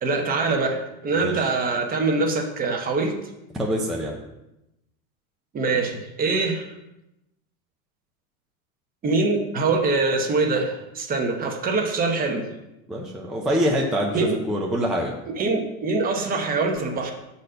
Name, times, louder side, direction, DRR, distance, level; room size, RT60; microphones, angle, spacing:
voice 1, 0.0-3.2 5.5-6.7 9.0-12.4 14.1-14.4 15.4-17.1, right 3 dB, 20° right, 3 dB, 1.0 m, -24 dB
voice 2, 3.6-4.2 12.9-15.1, equal, ahead, -2 dB, 0.5 m, -25 dB
6.5 x 4.2 x 6.5 m, 0.90 s
supercardioid pair, 145°, 43 cm